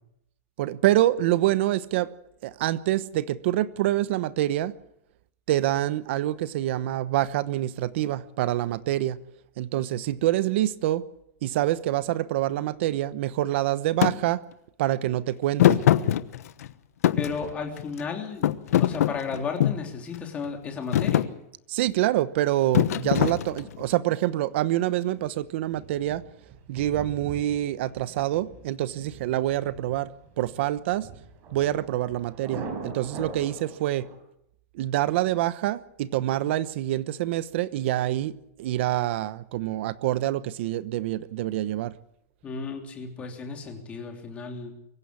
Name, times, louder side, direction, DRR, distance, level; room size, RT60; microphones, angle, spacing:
voice 1, 0.6-2.1 2.4-4.7 5.5-9.2 9.6-11.1 11.4-14.4 14.8-15.8 21.7-26.2 26.7-31.1 31.5-34.1 34.7-41.9, right 14 dB, 50° right, 1.0 m, -26 dB
Thump thud, 14.0-14.2 15.6-16.7 17.0-18.0 18.4-19.9 20.4-20.7 20.9-21.3 22.7-23.8, left 12 dB, 75° left, 1.2 m, -22 dB
voice 2, 17.2-18.5 18.8-21.3 42.4-44.7, left 5 dB, 15° left, 3.3 m, -34 dB
Thunder, 25.2-34.2, right 3 dB, 25° right, 4.7 m, -42 dB
24.0 x 16.0 x 8.4 m
supercardioid pair, 175°, 8 cm